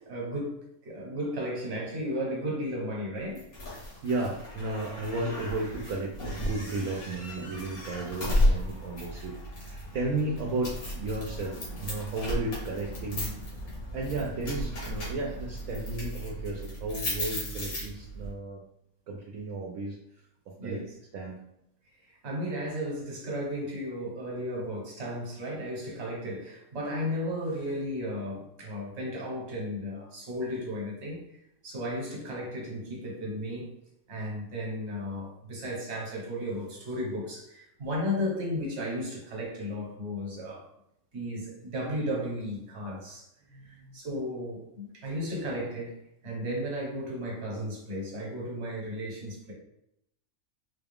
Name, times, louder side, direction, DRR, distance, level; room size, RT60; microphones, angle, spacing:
voice 1, 0.1-3.5 20.6-20.8 22.1-31.4 31.6-33.7 34.1-40.6 41.1-43.3 43.7-46.0 46.2-49.5, equal, 50° right, -2 dB, 1.3 m, -34 dB
sound 1, 3.3-18.3, left 1 dB, 80° left, 1.8 m, -34 dB
voice 2, 3.7-13.3 13.9-18.6 19.1-20.0 20.6-20.8 21.1-21.4 43.5-43.9, right 2 dB, 70° right, -2 dB, 1.0 m, -34 dB
4.0 x 2.3 x 3.5 m, 0.78 s
omnidirectional pair, 1.5 m